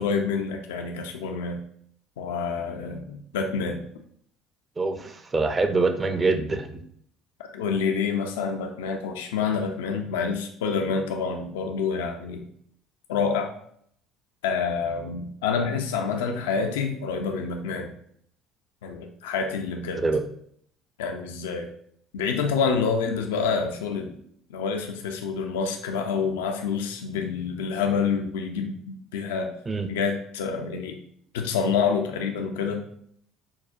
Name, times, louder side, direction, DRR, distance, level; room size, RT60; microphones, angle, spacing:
voice 1, 0.0-1.6 2.2-3.8 7.4-12.4 13.1-13.5 14.4-17.9 18.8-20.0 21.0-21.7 22.1-24.2 24.5-29.5 29.9-31.0 31.3-32.8, left 5 dB, 90° left, 4 dB, 0.4 m, -27 dB
voice 2, 4.8-6.8 20.0-20.3 29.7-29.9, right 3 dB, 25° right, 7 dB, 0.5 m, -25 dB
4.7 x 2.1 x 2.4 m, 0.65 s
hypercardioid pair, 75°, 0 cm